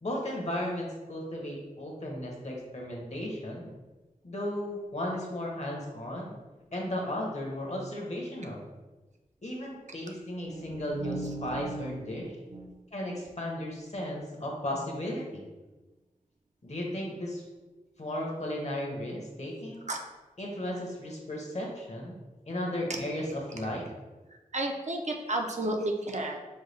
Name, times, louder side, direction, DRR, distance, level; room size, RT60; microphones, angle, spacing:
voice 1, 0.0-3.7 4.2-6.4 6.7-8.6 9.4-12.3 12.9-15.5 16.6-17.4 18.0-19.9 20.4-22.2 22.5-23.9, left 1 dB, 50° left, -1 dB, 1.0 m, -35 dB
voice 2, 10.5-12.2 12.5-12.7 19.9-20.0 24.5-26.4, right 2 dB, 55° right, 2 dB, 0.5 m, -33 dB
5.5 x 2.3 x 3.3 m, 1.2 s
wide cardioid pair, 65°, 14 cm